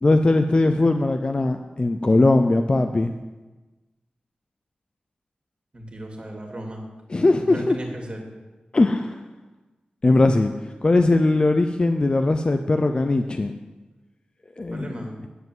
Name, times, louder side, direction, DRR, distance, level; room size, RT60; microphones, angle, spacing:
voice 1, 0.0-3.1 7.1-7.8 8.7-9.2 10.0-13.5 14.6-15.0, left 2 dB, 35° left, 7 dB, 0.6 m, -20 dB
voice 2, 5.7-6.8 7.4-8.2 14.7-15.2, right 1 dB, 40° right, 1 dB, 2.5 m, -36 dB
9.5 x 7.7 x 7.8 m, 1.2 s
wide cardioid pair, 105°, 3 cm